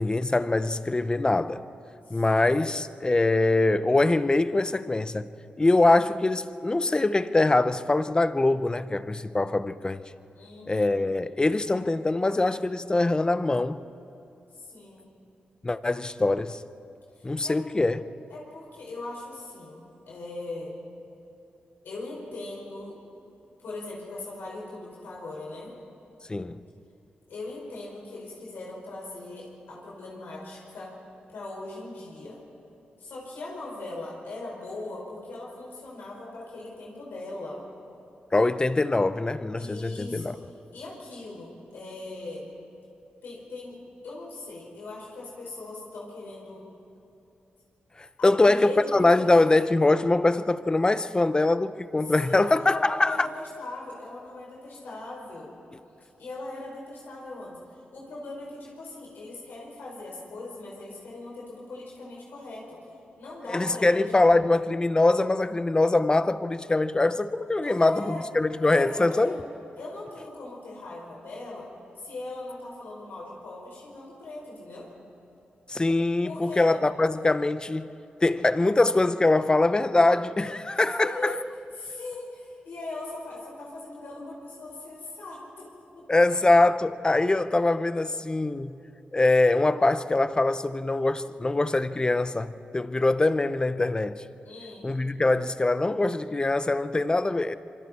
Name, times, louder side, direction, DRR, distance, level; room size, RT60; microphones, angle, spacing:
voice 1, 0.0-1.6 2.1-5.3 5.6-10.0 10.7-13.8 15.6-16.6 17.2-18.0 26.3-26.6 38.3-40.3 48.0-53.3 63.5-69.3 75.7-81.4 86.1-88.8 89.1-94.2 94.8-97.5, left 2 dB, 25° left, 0.7 m, -23 dB
voice 2, 2.1-2.5 10.3-11.0 14.5-15.1 17.2-17.6 18.3-20.7 21.8-23.0 23.6-25.7 27.3-30.9 31.3-32.4 33.0-37.6 39.6-40.4 40.7-42.5 43.2-43.8 44.0-46.6 48.2-49.3 52.0-55.5 56.2-62.8 63.2-64.0 67.6-68.3 68.7-69.4 69.8-71.7 72.0-74.9 76.2-76.8 81.0-81.4 81.8-85.7 85.9-86.1 94.4-94.9, left 2 dB, 90° left, 5.0 m, -39 dB
26.0 x 24.5 x 4.3 m
cardioid pair, 70°, 3 cm